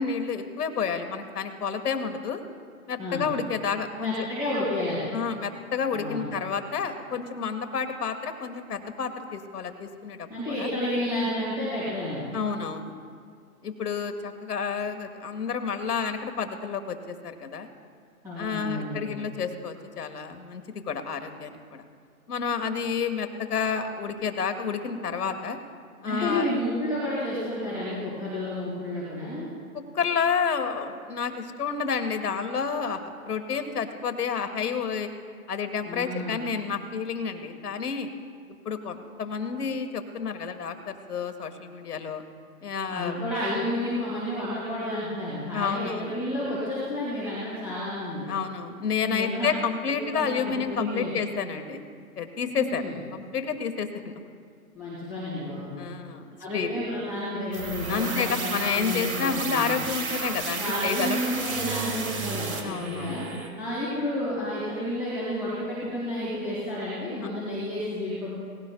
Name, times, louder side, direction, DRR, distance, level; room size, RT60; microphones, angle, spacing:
voice 1, 0.0-2.4 2.9-4.3 5.1-10.7 12.3-12.9 13.6-17.7 18.4-21.8 22.3-25.6 26.0-26.5 29.7-35.1 35.5-38.1 38.6-42.2 42.6-43.2 45.5-46.1 48.3-51.8 52.1-54.1 55.8-56.2 56.5-56.8 57.9-61.2 62.6-63.2, left 6 dB, 85° left, 7 dB, 1.5 m, -30 dB
voice 2, 4.0-5.1 5.9-6.3 10.3-12.2 18.2-19.1 26.0-29.5 35.8-36.4 42.9-48.3 49.0-49.5 50.1-51.1 52.5-52.9 54.7-55.8 56.4-59.7 60.5-63.3 63.6-68.3, left 1 dB, 5° right, -12 dB, 2.2 m, -31 dB
sound 1, 57.5-63.5, right 4 dB, 65° right, 2.1 m, -33 dB
18.5 x 16.5 x 2.2 m, 2.2 s
hypercardioid pair, 175°, 45 cm